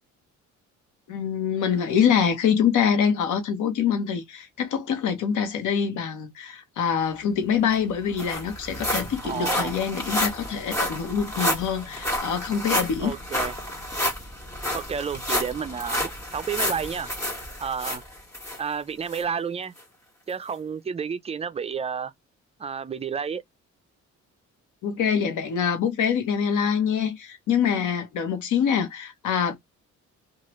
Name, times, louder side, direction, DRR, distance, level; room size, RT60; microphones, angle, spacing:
voice 1, 1.1-13.1 24.8-29.5, left 7 dB, 80° left, 1.0 m, -25 dB
sound 1, 7.4-7.5 7.7-18.6 19.1-19.2 19.8-19.9, left 1 dB, 10° left, 1.5 m, -30 dB
voice 2, 9.2-9.7 13.0-13.6 14.7-17.1 17.6-18.0 18.6-19.7 20.3-22.1 22.6-23.4, right 6 dB, 20° right, 0.4 m, -31 dB
3.0 x 2.4 x 3.0 m
cardioid pair, 90°, 30 cm